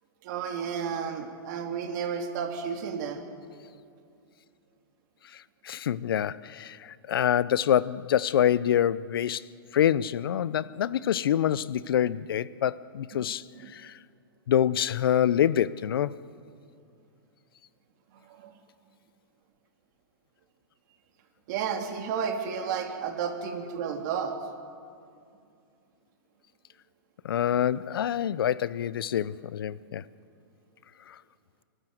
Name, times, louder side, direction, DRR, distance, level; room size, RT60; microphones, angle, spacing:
voice 1, 0.2-3.2 13.5-13.7 18.3-18.5 21.5-24.4, right 7 dB, 50° right, 3.1 m, -32 dB
voice 2, 5.3-9.4 9.7-14.0 14.5-16.2 27.2-30.0 31.1-31.2, left 10 dB, 75° left, 0.6 m, -26 dB
28.0 x 12.5 x 7.8 m
hypercardioid pair, 130°, 12 cm